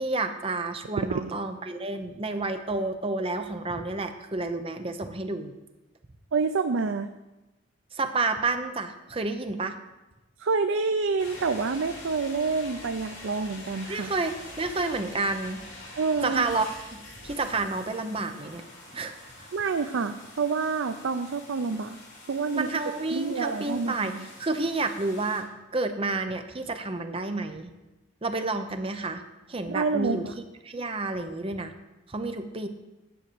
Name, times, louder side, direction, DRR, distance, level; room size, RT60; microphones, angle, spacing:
voice 1, 0.0-5.5 7.9-9.8 13.9-15.6 16.2-16.7 16.9-18.6 18.9-19.2 22.6-27.7 28.2-29.2 29.5-30.3 30.6-31.7 32.1-32.7, right 3 dB, 30° right, 8 dB, 0.7 m, -30 dB
voice 2, 6.3-7.1 10.4-14.1 16.0-16.4 19.5-22.0 22.3-22.7 23.1-24.3 29.7-30.3, right 4 dB, 80° right, 8 dB, 0.5 m, -28 dB
sound 1, 11.2-25.4, left 2 dB, 80° left, 3.4 m, -45 dB
10.0 x 5.9 x 6.8 m, 1.1 s
head